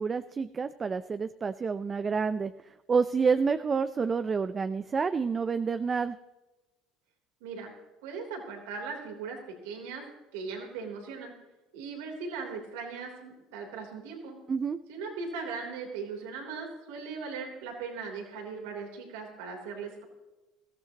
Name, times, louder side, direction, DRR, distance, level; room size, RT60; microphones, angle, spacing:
voice 1, 0.0-6.2 14.5-14.8, right 5 dB, 30° right, 11 dB, 0.5 m, -29 dB
voice 2, 7.4-7.7 8.0-9.4 9.6-10.0 10.3-11.3 11.7-14.4 14.9-20.0, right 5 dB, 85° right, 2 dB, 3.5 m, -39 dB
20.0 x 14.5 x 3.0 m, 1.1 s
supercardioid pair, 85°, 0 cm